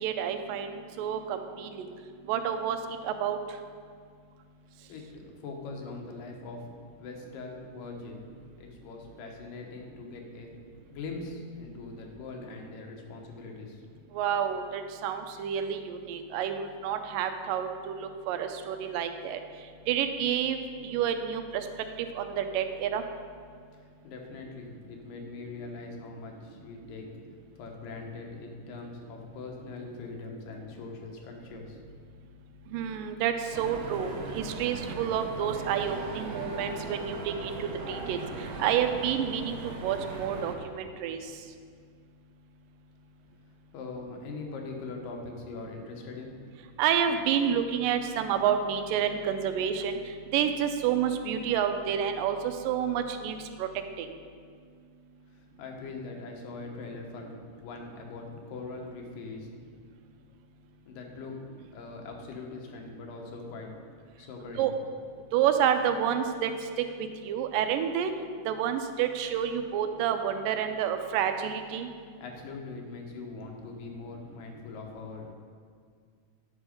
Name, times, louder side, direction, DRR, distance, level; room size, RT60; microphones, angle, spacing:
voice 1, 0.0-1.9 2.3-2.8 3.0-3.4 14.1-19.4 19.9-20.6 20.8-21.7 22.2-23.0 32.7-38.2 38.6-41.2 46.8-50.0 50.3-53.7 54.0-54.1 64.6-64.7 65.3-66.5 67.0-68.1 68.5-71.9, right 8 dB, 90° right, 8 dB, 2.3 m, -29 dB
voice 2, 4.9-6.7 7.0-8.2 8.6-10.5 10.9-13.8 23.8-27.1 27.6-31.8 43.7-46.4 55.3-59.5 60.9-61.4 61.7-63.7 64.2-64.7 72.2-75.3, left 3 dB, 85° left, 1 dB, 2.8 m, -42 dB
sound 1, 33.5-40.6, right 3 dB, 65° right, 1.7 m, -39 dB
10.0 x 6.1 x 5.2 m, 2.1 s
omnidirectional pair, 3.8 m